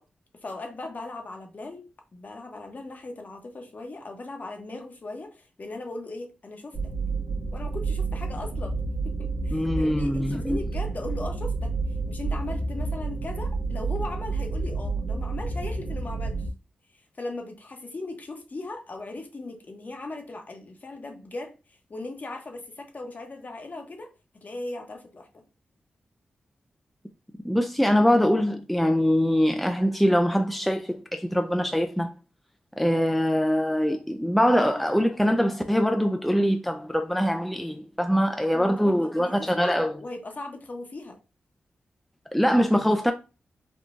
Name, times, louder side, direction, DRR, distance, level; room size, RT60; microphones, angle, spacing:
voice 1, 0.3-6.8 7.5-8.8 9.0-11.8 12.1-16.5 16.9-24.1 24.3-25.3 34.6-34.9 38.5-41.2, left 2 dB, 50° left, 0.9 m, -38 dB
sound 1, 6.7-16.5, right 3 dB, 40° right, 1.0 m, -30 dB
voice 2, 9.5-10.6 27.4-32.1 32.8-39.9 42.3-43.1, equal, ahead, 0.4 m, -23 dB
3.6 x 2.3 x 2.5 m
cardioid pair, 45°, 4 cm